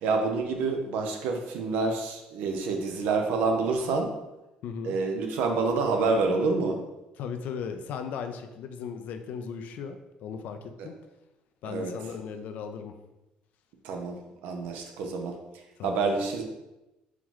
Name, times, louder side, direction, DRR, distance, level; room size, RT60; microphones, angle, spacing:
voice 1, 0.0-4.1 4.8-6.8 10.8-10.9 11.6-11.9 13.8-14.2 14.4-15.4 15.8-16.4, right 4 dB, 80° right, 3 dB, 0.7 m, -27 dB
voice 2, 4.6-5.0 7.2-10.0 10.2-10.9 11.6-12.9 15.8-16.2, left 6 dB, 70° left, 7 dB, 0.5 m, -37 dB
4.7 x 3.0 x 3.8 m, 0.98 s
cardioid pair, 90°, 3 cm